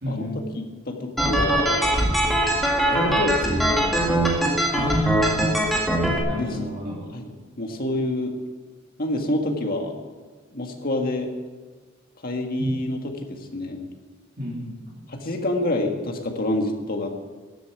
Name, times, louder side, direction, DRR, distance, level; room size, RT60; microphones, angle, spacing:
voice 1, 0.0-0.5 4.7-5.9 6.3-7.0 12.6-12.8 14.4-14.7, equal, 50° right, -5 dB, 3.0 m, -29 dB
voice 2, 0.6-1.8 2.9-3.4 3.7-4.0 6.4-6.5 7.1-7.3 7.6-8.4 9.0-10.0 10.5-11.3 12.2-13.8 15.1-17.2, left 1 dB, 50° left, 3 dB, 1.7 m, -27 dB
sound 1, 1.2-6.2, right 1 dB, ahead, 1.9 m, -22 dB
13.0 x 8.2 x 8.1 m, 1.4 s
head